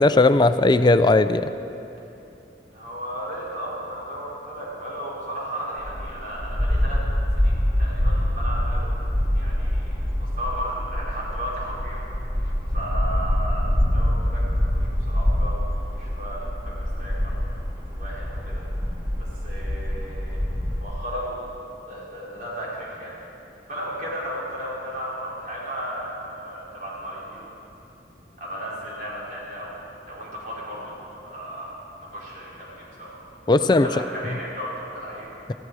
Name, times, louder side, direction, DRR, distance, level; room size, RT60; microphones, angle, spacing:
voice 1, 0.0-1.5 33.5-33.9, left 2 dB, 25° left, 11 dB, 0.4 m, -17 dB
voice 2, 2.7-7.0 7.3-8.9 9.3-12.0 12.3-17.4 18.0-18.6 19.2-20.4 20.8-21.5 21.8-23.2 23.7-27.6 28.4-33.2 33.7-35.5, equal, 50° right, -6 dB, 4.7 m, -35 dB
sound 1, 5.8-20.8, equal, 20° right, 2.1 m, -25 dB
18.0 x 15.0 x 4.8 m, 2.9 s
head